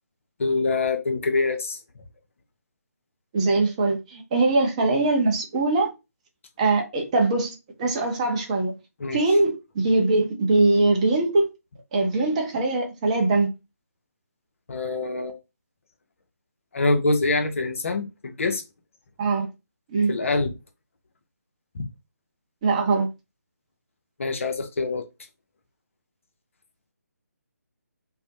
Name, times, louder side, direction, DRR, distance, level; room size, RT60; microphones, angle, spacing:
voice 1, 0.4-1.8 9.0-9.2 14.7-15.4 16.7-18.6 20.1-20.6 21.7-21.9 24.2-25.0, left 3 dB, 50° left, 0.5 m, -25 dB
voice 2, 3.3-5.9 6.6-8.7 9.1-11.5 11.9-13.5 19.2-19.5 19.9-20.1 22.6-23.1, right 2 dB, 25° right, 0.5 m, -22 dB
2.5 x 2.1 x 2.6 m
figure-of-eight pair, 145°, 9 cm